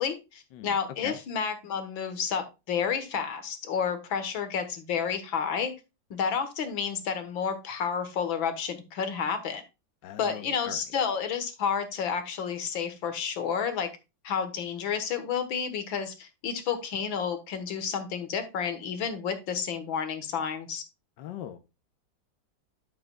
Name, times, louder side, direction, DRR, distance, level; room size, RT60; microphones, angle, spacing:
voice 1, 0.0-5.7 6.1-9.6 10.2-13.9 14.2-20.8, left 7 dB, 90° left, 8 dB, 2.1 m, -30 dB
voice 2, 10.0-10.8 21.2-21.6, left 11 dB, 75° left, 8 dB, 1.4 m, -40 dB
9.8 x 7.6 x 2.3 m, 0.26 s
omnidirectional pair, 2.1 m